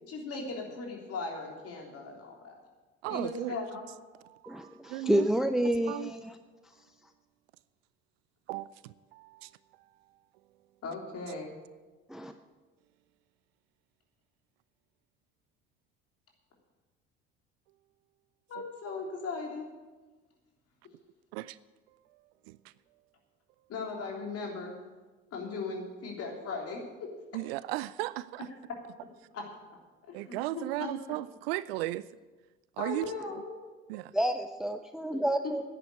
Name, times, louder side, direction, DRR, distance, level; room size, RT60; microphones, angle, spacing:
voice 1, 0.1-2.5 3.1-3.9 10.8-11.5 18.5-19.7 23.7-24.7 25.3-27.1 29.3-29.4 30.1-30.9 32.8-33.6 35.1-35.2, left 3 dB, 45° left, 3.4 m, -38 dB
voice 2, 3.0-3.6 4.2-5.3 5.9-6.1 8.5-9.5 21.3-21.6 22.5-22.6 27.3-28.5 30.1-32.1 32.8-33.1 33.9-34.1, right 17 dB, 65° right, 0.5 m, -36 dB
voice 3, 4.5-6.4 12.1-12.3 34.1-35.6, right 1 dB, ahead, 0.6 m, -29 dB
10.0 x 8.7 x 9.7 m
figure-of-eight pair, 60°, 33 cm